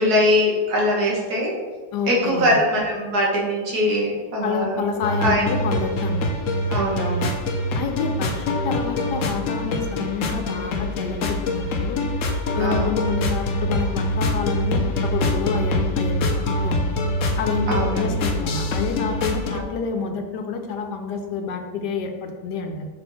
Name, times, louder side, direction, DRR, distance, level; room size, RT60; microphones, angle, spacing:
voice 1, 0.0-1.5 2.1-4.8 5.2-5.4 6.7-7.3 12.6-12.9 17.7-18.1 19.5-19.6, left 1 dB, 65° right, -3 dB, 1.9 m, -21 dB
voice 2, 1.9-2.6 4.4-6.4 7.7-12.0 12.5-16.8 17.4-22.9, left 5 dB, 80° left, 5 dB, 1.3 m, -28 dB
sound 1, 5.0-19.6, left 1 dB, 60° left, 0.9 m, -24 dB
6.0 x 4.4 x 4.1 m, 1.4 s
omnidirectional pair, 1.8 m